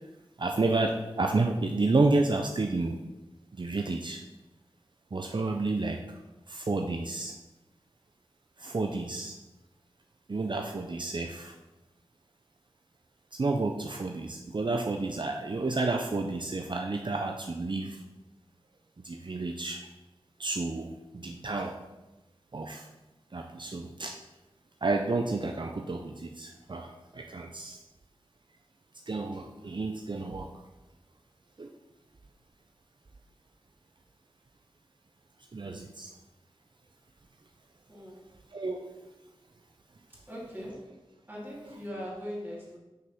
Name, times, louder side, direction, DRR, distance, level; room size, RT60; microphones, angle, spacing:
voice 1, 0.4-3.0 3.5-4.2 5.1-6.0 6.5-7.3 8.6-9.3 10.3-11.5 13.3-18.0 19.0-19.9 20.4-21.8 22.5-22.9 23.3-24.1 24.8-27.8 29.1-30.5 31.6-31.7 35.5-36.1 38.5-38.8, right 3 dB, 50° right, 3 dB, 0.6 m, -30 dB
voice 2, 37.9-38.2 40.3-40.9 41.3-42.8, equal, 20° right, -6 dB, 2.6 m, -40 dB
6.5 x 5.5 x 5.9 m, 1.0 s
wide cardioid pair, 65°, 10 cm